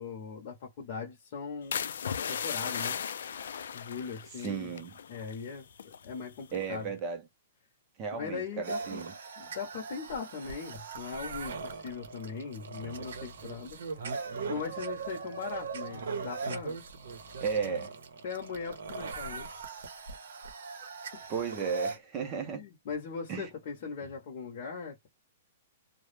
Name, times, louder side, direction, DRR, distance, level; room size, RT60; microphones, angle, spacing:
voice 1, 0.0-1.8 2.1-3.0 3.7-4.7 5.1-6.9 8.1-9.1 9.4-13.8 14.5-16.8 18.2-19.5 21.1-21.3 22.5-25.1, left 5 dB, 35° left, 0.6 m, -39 dB
sound 1, 1.7-5.5 5.7-6.1 6.5-6.9, left 7 dB, 70° left, 0.3 m, -36 dB
voice 2, 4.4-5.0 6.5-7.2 8.0-9.1 17.4-17.9 21.3-22.6 23.3-23.5, right 6 dB, 20° right, 0.5 m, -34 dB
sound 2, 8.6-22.0, right 4 dB, 75° right, 0.7 m, -40 dB
2.2 x 2.0 x 3.1 m
hypercardioid pair, 180°, 0 cm